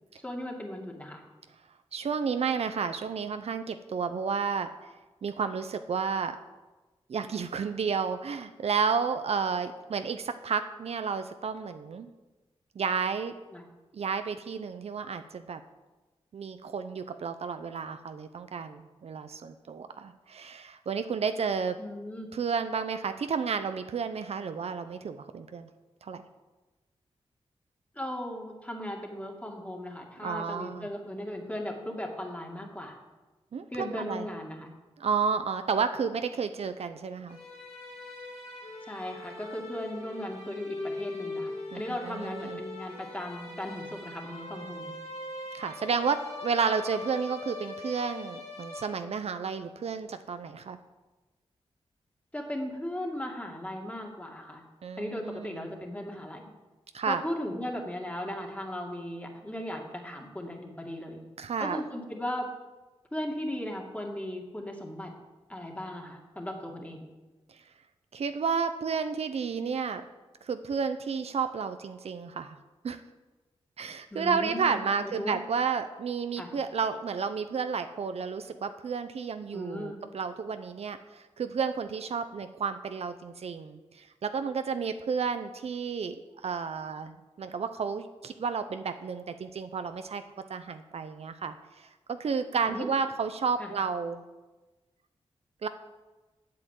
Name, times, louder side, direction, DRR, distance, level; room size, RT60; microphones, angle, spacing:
voice 1, 0.2-1.2 13.5-13.6 21.8-22.3 28.0-32.9 33.7-34.7 38.8-44.9 52.3-54.6 55.0-56.5 57.1-61.2 61.6-62.5 63.1-65.1 65.5-67.1 74.1-75.4 76.4-76.5 79.5-80.0 92.7-92.9 93.6-93.7, left 1 dB, 15° left, 1 dB, 2.2 m, -37 dB
voice 2, 1.9-4.9 5.2-6.4 7.1-12.1 12.8-13.3 13.9-15.6 16.3-21.8 22.3-25.7 26.0-26.2 30.2-30.9 33.5-34.3 35.0-37.4 41.7-42.6 45.5-50.8 54.8-55.7 56.9-57.2 61.4-61.8 68.1-70.0 70.4-72.6 72.8-73.0 73.8-86.2 86.4-87.1 87.4-90.2 90.5-94.2 95.6-95.7, right 5 dB, 70° right, 9 dB, 0.6 m, -31 dB
sound 1, 37.3-49.4, left 2 dB, 75° left, 2.3 m, -41 dB
8.5 x 7.8 x 7.6 m, 1.2 s
cardioid pair, 70°, 11 cm